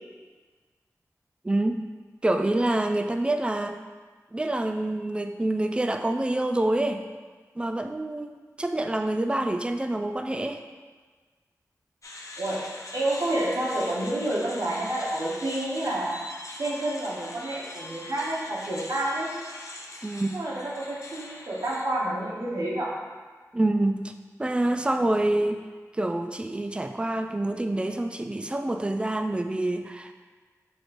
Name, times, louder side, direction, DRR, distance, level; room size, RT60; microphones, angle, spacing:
voice 1, 1.4-1.9 2.2-3.8 4.3-7.0 7.6-10.6 20.0-20.3 23.5-24.1 24.4-25.6 25.9-30.1, right 1 dB, 15° right, 6 dB, 0.3 m, -26 dB
sound 1, 12.0-21.8, left 2 dB, 60° left, 0.5 m, -42 dB
voice 2, 12.9-16.1 16.6-19.3 20.3-22.9, right 1 dB, 80° right, -5 dB, 1.1 m, -29 dB
6.4 x 3.1 x 2.5 m, 1.4 s
cardioid pair, 55°, 6 cm